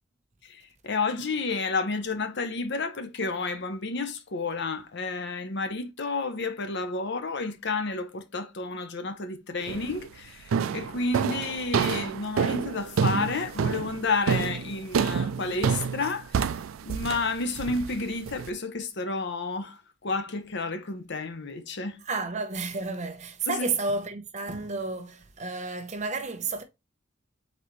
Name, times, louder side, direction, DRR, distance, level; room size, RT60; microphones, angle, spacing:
voice 1, 0.4-16.5 16.8-22.0 23.5-23.7, left 3 dB, 60° left, 0.8 m, -31 dB
sound 1, 9.7-10.0 10.5-18.5, right 6 dB, 85° right, 0.4 m, -28 dB
voice 2, 22.1-26.6, right 3 dB, 35° right, 0.8 m, -31 dB
4.1 x 4.1 x 3.1 m
head